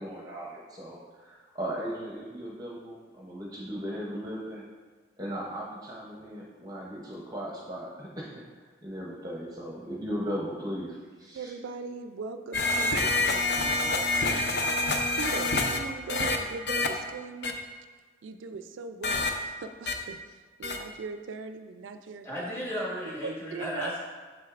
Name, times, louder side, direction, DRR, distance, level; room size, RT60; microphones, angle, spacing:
voice 1, 0.0-4.6 5.2-8.3 8.8-11.5, equal, 20° right, -3 dB, 0.7 m, -37 dB
voice 2, 11.3-17.6 18.2-22.3 23.5-24.0, right 4 dB, 80° right, 8 dB, 0.3 m, -40 dB
sound 1, 12.5-15.8 16.1-16.4 16.7-16.9 17.4-17.5 19.0-19.3 19.9-20.0 20.6-20.8, left 2 dB, 55° left, 0.5 m, -26 dB
voice 3, 22.2-24.0, equal, 15° left, -6 dB, 1.6 m, -34 dB
7.6 x 6.3 x 2.4 m, 1.4 s
head